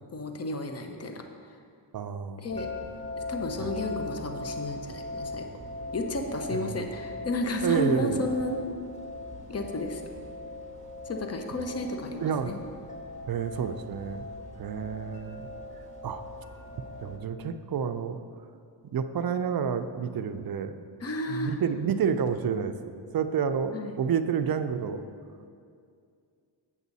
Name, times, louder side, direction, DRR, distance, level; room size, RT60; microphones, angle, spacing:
voice 1, 0.1-1.2 2.4-2.7 3.3-5.5 5.9-8.7 9.5-10.0 11.0-12.6 21.0-21.6 23.7-24.0, left 1 dB, 30° left, 5 dB, 0.8 m, -32 dB
voice 2, 1.9-2.5 3.6-3.7 6.5-6.8 7.6-8.3 12.2-12.6 13.3-14.3 14.6-15.5 16.0-16.2 17.0-18.2 18.9-20.8 21.3-25.1, right 7 dB, 50° right, 10 dB, 0.5 m, -29 dB
sound 1, 2.5-17.2, left 2 dB, 15° left, 1.5 m, -40 dB
8.2 x 7.1 x 4.1 m, 2.3 s
cardioid pair, 70°, 47 cm